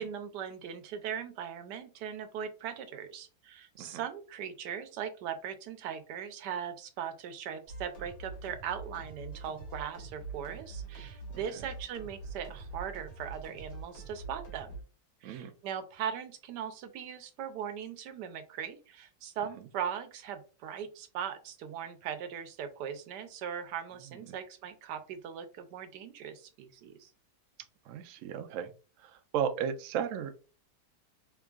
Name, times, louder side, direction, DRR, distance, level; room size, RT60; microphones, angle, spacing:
voice 1, 0.0-14.8 15.2-27.1, right 8 dB, 90° right, 9 dB, 1.2 m, -39 dB
sound 1, 7.7-14.8, right 3 dB, 60° left, 1.9 m, -44 dB
voice 2, 27.9-28.7 29.0-30.4, right 8 dB, 70° right, 8 dB, 0.8 m, -34 dB
3.7 x 3.5 x 2.3 m, 0.35 s
omnidirectional pair, 1.8 m